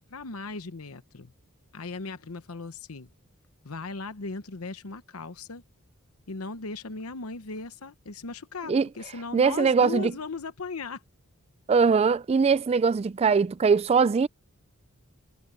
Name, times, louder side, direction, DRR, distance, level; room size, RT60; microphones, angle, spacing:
voice 1, 0.1-1.3 1.7-3.1 3.6-5.6 6.3-11.0, left 3 dB, 85° left, 1.0 m, -37 dB
voice 2, 9.3-10.1 11.7-14.3, right 5 dB, 30° right, 0.3 m, -21 dB
head